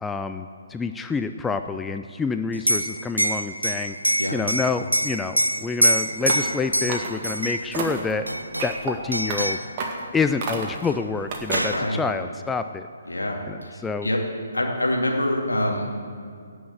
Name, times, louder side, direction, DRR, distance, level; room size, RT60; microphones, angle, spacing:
voice 1, 0.0-8.3 8.6-9.6 10.1-12.9 13.5-14.1, left 4 dB, 10° left, 8 dB, 0.4 m, -28 dB
Liquid, 2.5-7.8 8.3-8.8 9.1-9.7 10.9-11.0 11.2-11.9, equal, 90° right, 0.6 m, -25 dB
sound 1, 6.2-6.6 6.9-7.4 7.7-8.1 8.6-8.9 9.3-9.4 9.8-10.0 10.4-10.8 11.3-11.8, right 4 dB, 30° right, 2.0 m, -30 dB
voice 2, 11.7-12.0 13.1-14.2 14.5-16.0, left 1 dB, 75° left, 1 dB, 2.5 m, -26 dB
17.5 x 6.5 x 7.9 m, 2.2 s
figure-of-eight pair, 135°, 0 cm